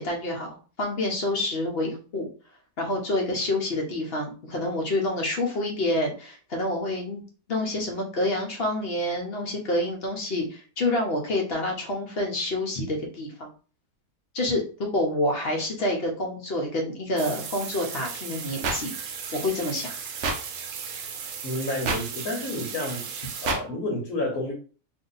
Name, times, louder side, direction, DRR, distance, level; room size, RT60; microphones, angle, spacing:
voice 1, 0.0-2.3 2.8-7.2 7.5-13.5 14.3-18.9 19.3-19.9, left 1 dB, 50° left, 0 dB, 0.9 m, -28 dB
sound 1, 17.2-23.5, right 6 dB, 80° right, 1.2 m, -36 dB
sound 2, 18.6-18.8 20.2-20.4 21.8-22.0 23.4-23.6, right 3 dB, 60° right, 0.7 m, -25 dB
voice 2, 21.4-23.1 23.4-24.5, left 1 dB, 70° left, 0 dB, 1.3 m, -30 dB
2.7 x 2.7 x 3.9 m, 0.38 s
omnidirectional pair, 1.6 m